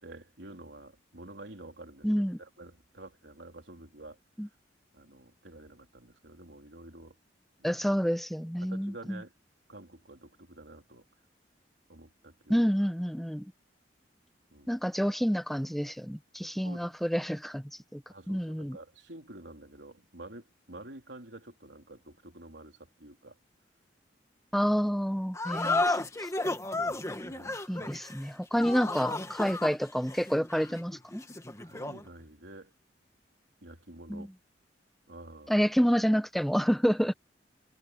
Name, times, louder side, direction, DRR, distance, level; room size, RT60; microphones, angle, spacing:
voice 1, 0.0-4.2 4.9-7.2 7.6-7.9 8.6-9.3 9.7-11.1 11.9-12.6 14.5-14.8 16.6-16.9 18.1-23.4 26.8-27.9 28.5-28.6 31.6-32.7 33.6-34.3 35.1-35.6, right 2 dB, 80° right, 3.6 m, -49 dB
voice 2, 2.0-2.4 4.4-4.5 7.6-9.2 12.5-13.5 14.7-18.0 18.3-18.8 24.5-26.0 27.7-31.2 34.1-34.3 35.5-37.1, equal, ahead, 1.1 m, -28 dB
sound 1, 25.3-32.1, left 2 dB, 15° left, 1.5 m, -33 dB
head